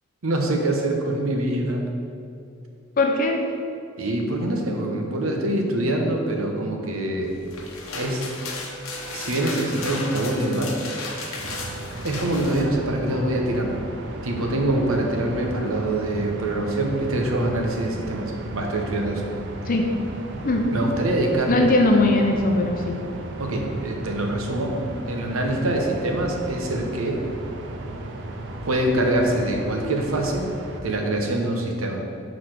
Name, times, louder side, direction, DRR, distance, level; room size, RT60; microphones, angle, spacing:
voice 1, 0.2-1.8 4.0-7.3 7.9-8.2 9.1-10.7 11.2-11.4 12.0-13.8 14.2-19.2 20.7-21.6 23.4-24.8 25.1-27.2 28.6-30.5 30.8-32.0, right 1 dB, 85° right, 2 dB, 0.9 m, -24 dB
voice 2, 3.0-3.4 19.6-19.9 20.4-20.7 21.5-23.0, left 2 dB, 45° left, 2 dB, 0.6 m, -20 dB
sound 1, 7.3-12.7, left 3 dB, 90° left, 0.9 m, -35 dB
Wind instrument woodwind instrument, 8.0-12.1, right 5 dB, 30° right, 1.3 m, -40 dB
sound 2, 11.4-30.8, right 1 dB, 60° right, 0.5 m, -35 dB
5.0 x 4.0 x 5.9 m, 2.6 s
head